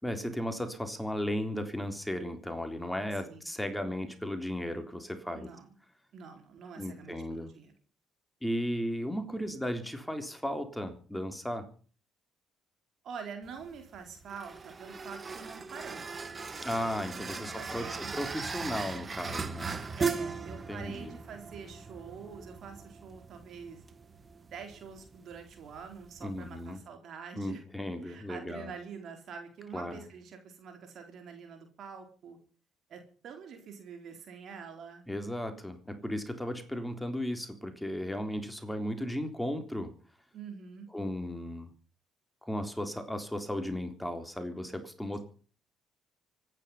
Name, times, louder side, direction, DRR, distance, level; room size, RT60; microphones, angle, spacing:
voice 1, 0.0-5.5 6.8-7.5 8.4-11.7 16.6-19.7 20.7-21.2 26.2-26.8 27.3-28.7 29.7-30.0 35.1-39.9 40.9-41.7 42.4-45.2, equal, 5° left, 7 dB, 3.7 m, -35 dB
voice 2, 5.3-5.8 6.1-7.7 13.0-16.1 17.0-18.2 20.0-23.8 24.5-27.6 28.0-32.4 32.9-35.0 40.3-40.9, right 6 dB, 55° right, 5 dB, 4.2 m, -46 dB
sound 1, 13.4-26.8, right 4 dB, 35° right, 1.9 m, -39 dB
24.5 x 10.0 x 5.8 m, 0.41 s
figure-of-eight pair, 45°, 0 cm